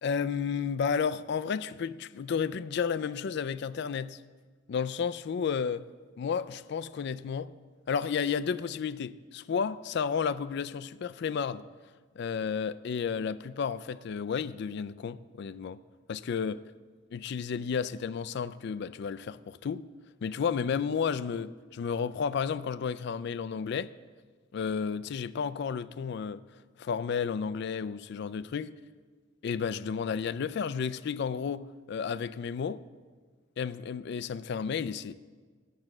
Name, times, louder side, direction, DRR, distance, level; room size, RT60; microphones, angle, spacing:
voice 1, 0.0-4.2 4.7-5.8 6.2-7.5 7.9-11.6 12.2-15.8 16.1-16.6 17.1-19.9 20.2-23.9 24.5-26.4 26.8-28.7 29.4-32.8 33.6-35.1, left 6 dB, 55° left, 0.3 m, -32 dB
12.0 x 7.6 x 6.0 m
head